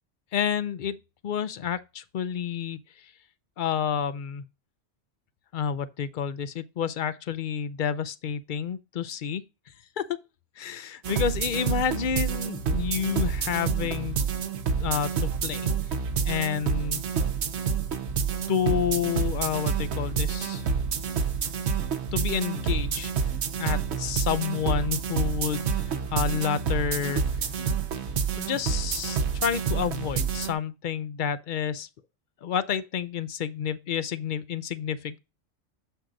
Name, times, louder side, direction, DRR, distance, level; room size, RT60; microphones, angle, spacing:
voice 1, 0.3-1.0 1.2-3.1 3.6-4.5 5.5-9.4 10.0-10.2 10.9-14.2 14.8-15.7 16.2-17.0 18.5-20.6 22.1-23.1 23.6-27.2 28.4-31.9 32.4-35.2, left 8 dB, 55° left, 0.6 m, -29 dB
sound 1, 11.0-30.5, right 6 dB, 65° right, 1.0 m, -28 dB
7.7 x 4.5 x 3.8 m
omnidirectional pair, 1.3 m